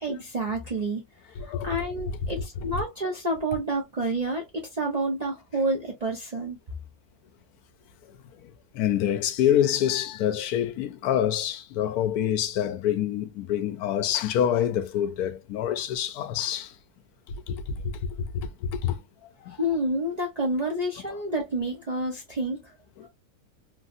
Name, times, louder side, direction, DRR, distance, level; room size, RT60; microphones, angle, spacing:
voice 1, 0.0-1.0 1.4-6.6 19.6-22.7 23.0-23.1, right 1 dB, 50° right, 0.5 m, -29 dB
voice 2, 1.4-1.8 2.2-2.4 2.7-2.8 8.7-16.7 17.5-17.9 18.3-19.0 19.4-19.6 21.0-21.1 23.0-23.1, left 10 dB, 90° left, 1.1 m, -26 dB
3.2 x 2.6 x 2.4 m
omnidirectional pair, 1.6 m